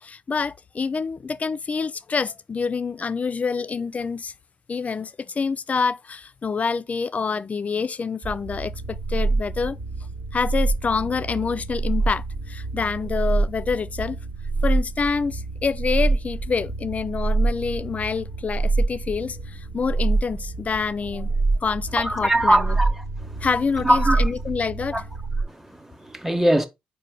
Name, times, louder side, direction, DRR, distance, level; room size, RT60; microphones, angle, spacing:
voice 1, 0.0-4.3 4.7-9.8 10.3-14.2 14.6-21.3 21.6-22.8 23.4-25.0, left 5 dB, 35° left, 0.3 m, -27 dB
sound 1, 8.2-25.4, right 3 dB, 60° right, 1.3 m, -26 dB
voice 2, 22.0-23.5 23.8-24.3 24.9-25.0 25.5-26.7, right 1 dB, 10° right, 0.8 m, -22 dB
4.6 x 2.1 x 4.6 m
hypercardioid pair, 45°, 4 cm